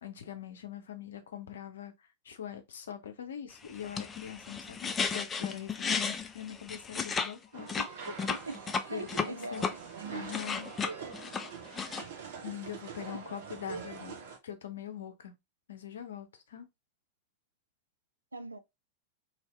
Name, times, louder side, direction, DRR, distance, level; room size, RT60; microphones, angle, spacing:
voice 1, 0.0-7.7 8.9-9.6 10.1-10.7 12.4-14.2 14.4-15.3 15.7-16.7, left 9 dB, 65° left, 0.6 m, -43 dB
sound 1, 3.7-7.3 7.6-9.7 10.1-12.0, left 5 dB, 20° left, 0.4 m, -34 dB
sound 2, 7.5-14.4, right 6 dB, 55° right, 0.7 m, -44 dB
voice 2, 7.8-8.6 8.9-9.8 13.1-13.2 18.3-18.6, right 2 dB, 80° right, 0.3 m, -41 dB
2.8 x 2.7 x 3.1 m
figure-of-eight pair, 90°, 0 cm